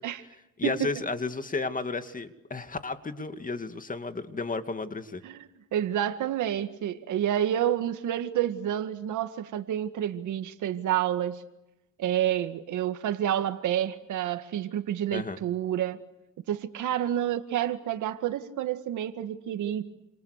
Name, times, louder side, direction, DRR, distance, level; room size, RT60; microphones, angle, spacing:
voice 1, 0.6-5.2 15.1-15.4, left 3 dB, 25° left, 2.4 m, -33 dB
voice 2, 5.7-11.4 12.0-16.0 16.5-19.8, right 11 dB, 80° right, 2.1 m, -29 dB
29.0 x 28.0 x 6.7 m
cardioid pair, 90°, 30 cm